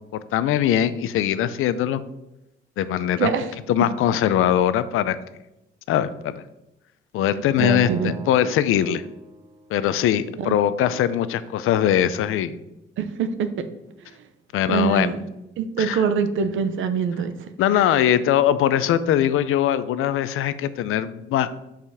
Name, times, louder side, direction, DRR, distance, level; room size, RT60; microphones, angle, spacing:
voice 1, 0.1-2.0 2.8-3.3 3.7-5.2 5.9-6.4 7.1-9.0 9.7-12.6 14.5-15.1 15.8-16.0 17.6-21.5, left 10 dB, 85° left, 14 dB, 0.5 m, -21 dB
Acoustic guitar, 7.6-10.0, right 5 dB, 15° right, 0.3 m, -38 dB
voice 2, 7.6-8.1 10.4-10.5 13.0-13.7 14.7-15.2 15.6-17.3, right 6 dB, 70° right, 10 dB, 0.7 m, -24 dB
5.5 x 5.1 x 6.2 m, 0.92 s
cardioid pair, 175°, 21 cm